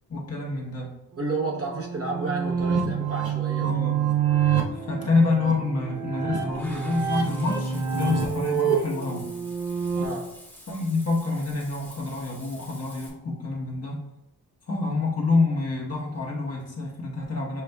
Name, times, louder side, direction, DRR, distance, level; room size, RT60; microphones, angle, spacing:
voice 1, 0.1-1.0 3.6-4.1 4.7-9.3 10.7-14.0 14.7-17.6, left 3 dB, 40° left, -2 dB, 1.1 m, -27 dB
voice 2, 1.2-3.7 9.9-10.3, right 3 dB, 40° right, -1 dB, 0.9 m, -31 dB
sound 1, 1.2-10.1, right 7 dB, 75° right, 0.6 m, -27 dB
Water / Bathtub (filling or washing), 6.5-13.1, left 1 dB, 5° left, 1.1 m, -48 dB
6.7 x 2.4 x 2.2 m, 0.86 s
cardioid pair, 60°, 37 cm